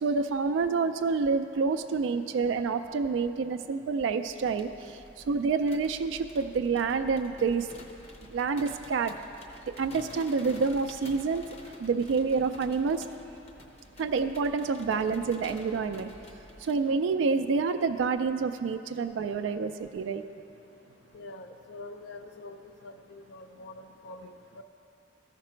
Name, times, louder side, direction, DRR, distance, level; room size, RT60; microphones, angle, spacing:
voice 1, 0.0-4.7 5.3-7.7 8.3-9.2 9.8-11.4 11.8-13.0 14.0-16.1 16.7-20.2, right 4 dB, 80° right, 9 dB, 0.3 m, -28 dB
sound 1, 4.3-16.7, left 1 dB, 35° left, 0.7 m, -50 dB
voice 2, 21.1-24.6, left 2 dB, 65° left, 6 dB, 0.4 m, -45 dB
14.0 x 5.9 x 4.4 m, 2.7 s
head